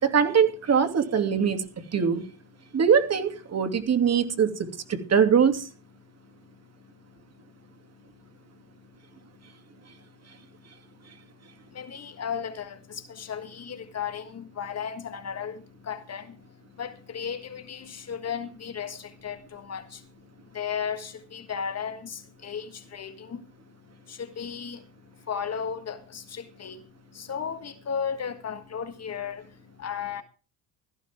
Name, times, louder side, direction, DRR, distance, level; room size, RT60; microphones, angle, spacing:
voice 1, 0.0-1.6 1.9-2.2 2.7-5.7, right 7 dB, 40° right, 2.8 m, -22 dB
voice 2, 11.7-23.5 23.9-30.2, left 7 dB, 35° left, 1.7 m, -35 dB
16.0 x 14.5 x 3.6 m
cardioid pair, 110°, 41 cm